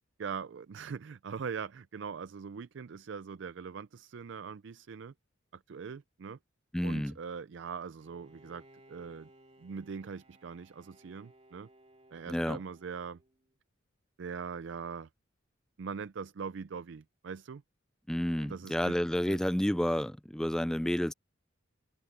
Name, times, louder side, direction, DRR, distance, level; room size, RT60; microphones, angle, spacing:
voice 1, 0.2-5.1 5.5-6.4 6.8-8.6 8.9-9.3 9.6-11.7 12.1-13.2 14.2-15.1 15.8-17.6 18.4-19.0 19.3-19.4, right 6 dB, 65° right, 0.4 m, -41 dB
voice 2, 6.7-7.1 12.3-12.6 18.1-21.1, equal, 5° left, 0.3 m, -30 dB
Bowed string instrument, 8.0-13.6, right 1 dB, 30° right, 2.5 m, -61 dB
head